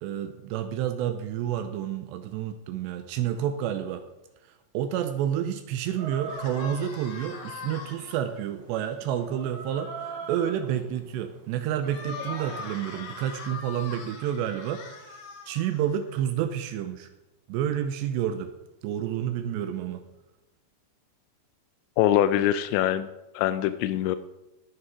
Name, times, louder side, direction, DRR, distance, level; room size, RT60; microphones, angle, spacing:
voice 1, 0.0-4.0 4.7-15.2 15.5-17.1 17.5-18.5 18.8-20.0, right 10 dB, 90° right, 8 dB, 2.5 m, -29 dB
Chicken rooster, 6.0-13.0, right 4 dB, 70° right, 4.6 m, -43 dB
sound 1, 6.3-8.1 11.8-16.2, left 4 dB, 60° left, 3.1 m, -41 dB
voice 2, 22.0-23.1 23.3-24.2, left 11 dB, 85° left, 11 dB, 2.6 m, -23 dB
18.0 x 6.7 x 4.7 m, 1.0 s
omnidirectional pair, 5.7 m